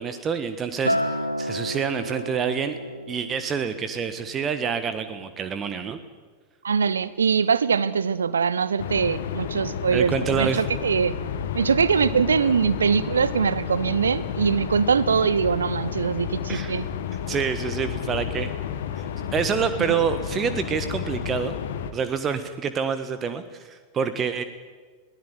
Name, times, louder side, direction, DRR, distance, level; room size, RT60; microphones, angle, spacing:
voice 1, 0.0-2.8 3.1-6.0 9.9-10.6 16.5-16.8 17.3-18.5 19.0-19.1 19.3-21.6 21.9-24.4, right 7 dB, 25° right, 11 dB, 1.4 m, -27 dB
Acoustic guitar, 0.8-5.3 5.7-6.0, equal, 90° right, 1.4 m, -31 dB
voice 2, 6.6-11.2 11.5-16.9, right 6 dB, 70° right, 18 dB, 0.7 m, -22 dB
sound 1, 8.8-21.9, left 8 dB, 55° left, 1.8 m, -31 dB
21.5 x 16.5 x 9.8 m, 1.4 s
figure-of-eight pair, 90°, 0 cm